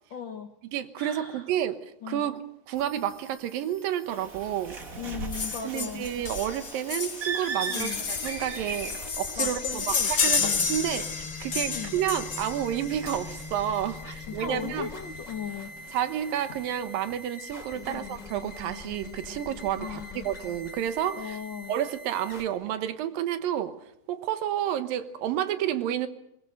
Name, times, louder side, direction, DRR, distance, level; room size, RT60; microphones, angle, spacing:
voice 1, 0.1-0.5 1.0-1.5 2.0-2.2 5.0-6.1 7.7-8.0 9.4-10.7 11.7-12.0 14.0-15.7 17.9-18.2 19.8-20.4 21.1-21.7, left 7 dB, 65° left, 5 dB, 1.1 m, -38 dB
voice 2, 0.7-1.8 2.1-2.4 2.7-4.8 5.6-14.9 15.9-21.4 21.7-23.8 24.1-26.1, right 10 dB, 85° right, 11 dB, 2.9 m, -30 dB
sound 1, 2.7-22.4, left 3 dB, 10° left, 3.0 m, -44 dB
Bird, 4.1-9.1, right 4 dB, 35° right, 1.6 m, -37 dB
sound 2, 5.3-13.6 14.7-14.8 15.1-15.2 15.5-15.6 16.0-16.6 17.1-17.2, left 5 dB, 50° left, 0.9 m, -31 dB
22.0 x 20.5 x 7.8 m, 0.78 s
omnidirectional pair, 3.9 m